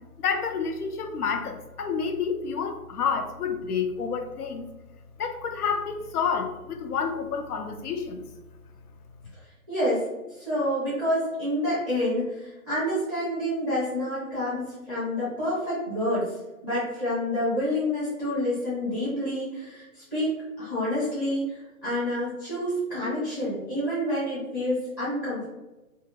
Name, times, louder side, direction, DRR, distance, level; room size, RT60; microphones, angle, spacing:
voice 1, 0.2-4.7 5.2-8.2, left 6 dB, 85° left, 6 dB, 0.6 m, -29 dB
voice 2, 9.7-10.0 10.3-16.3 16.6-25.5, left 1 dB, ahead, -12 dB, 0.5 m, -28 dB
2.7 x 2.5 x 2.8 m, 1.0 s
hypercardioid pair, 155°, 44 cm